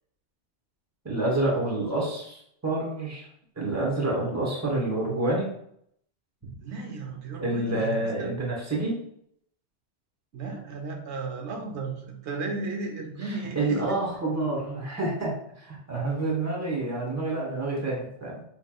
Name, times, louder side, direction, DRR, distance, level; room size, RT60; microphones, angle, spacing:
voice 1, 1.0-3.2 3.6-5.5 6.4-6.5 7.4-9.0 13.6-18.4, right 2 dB, 15° right, -2 dB, 0.9 m, -28 dB
voice 2, 6.6-8.3 10.3-14.0, right 3 dB, 90° right, 2 dB, 1.0 m, -35 dB
4.3 x 3.1 x 2.3 m, 0.71 s
omnidirectional pair, 1.1 m